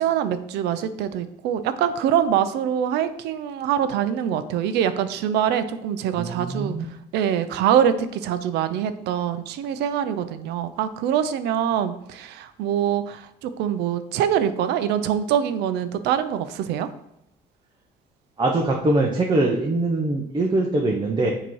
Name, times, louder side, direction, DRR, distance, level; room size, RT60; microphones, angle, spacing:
voice 1, 0.0-6.8 7.1-16.9, right 9 dB, 85° right, 11 dB, 0.5 m, -24 dB
voice 2, 6.2-6.8 18.4-21.3, right 2 dB, 25° right, 0 dB, 0.7 m, -22 dB
6.9 x 2.9 x 4.6 m, 0.80 s
cardioid pair, 110°, 17 cm